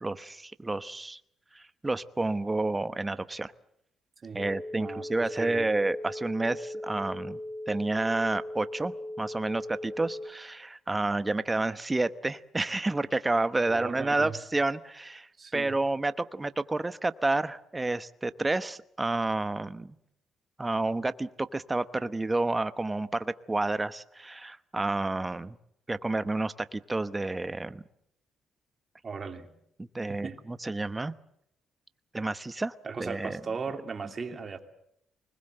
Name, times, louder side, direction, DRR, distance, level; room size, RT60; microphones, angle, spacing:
voice 1, 0.0-1.2 1.5-3.5 4.3-7.4 7.7-19.9 20.6-25.5 25.9-27.8 29.8-31.1 32.1-32.7 33.0-33.4, right 2 dB, 20° right, 13 dB, 1.0 m, -30 dB
voice 2, 4.2-4.5 4.8-5.7 13.7-14.4 15.4-15.7 29.0-29.5 30.1-30.4 32.8-34.6, right 5 dB, 40° right, 5 dB, 2.8 m, -37 dB
sound 1, 4.4-10.3, left 1 dB, 35° left, 4.0 m, -39 dB
24.5 x 20.5 x 7.8 m, 0.76 s
cardioid pair, 90°, 0 cm